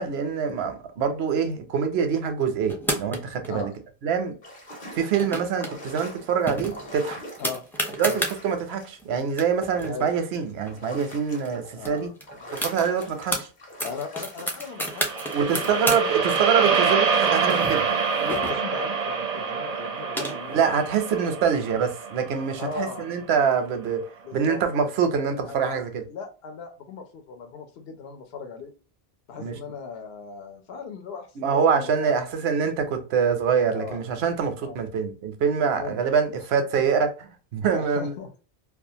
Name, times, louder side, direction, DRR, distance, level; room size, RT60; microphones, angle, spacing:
voice 1, 0.0-3.7 4.0-4.3 4.9-7.2 8.0-12.1 12.5-13.5 15.3-17.8 20.5-24.1 24.3-26.0 29.4-29.6 31.4-38.2, right 6 dB, 85° right, 0.9 m, -25 dB
sound 1, 2.7-3.5 5.0-5.7 6.0-6.1 6.5-8.4 9.0-9.1 9.3-11.1 11.4-11.5 11.8-13.4 13.8-16.0 16.3-18.9 19.7-20.7, equal, 5° left, 0.4 m, -31 dB
sound 2, 4.4-9.1 9.5-9.9 10.6-11.8 12.2-16.6, left 1 dB, 50° left, 0.9 m, -43 dB
voice 2, 11.7-12.1 13.8-15.8 16.1-16.2 18.1-20.7 22.6-23.1 24.2-24.6 25.5-25.8 26.1-28.7 29.3-32.2 33.7-34.0 34.6-34.8 35.7-36.0 36.3-36.4 37.7-38.4, left 5 dB, 75° left, 0.9 m, -37 dB
sound 3, 14.8-23.1, right 5 dB, 55° right, 0.5 m, -26 dB
2.4 x 2.3 x 2.7 m
omnidirectional pair, 1.0 m